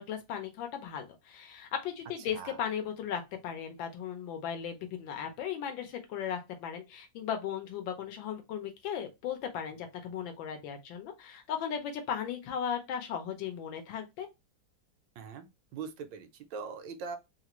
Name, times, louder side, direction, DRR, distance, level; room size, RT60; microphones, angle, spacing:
voice 1, 0.0-14.3, left 8 dB, 90° left, 1.5 m, -37 dB
voice 2, 15.2-17.2, right 5 dB, 80° right, 1.3 m, -41 dB
3.6 x 2.5 x 2.9 m
omnidirectional pair, 2.0 m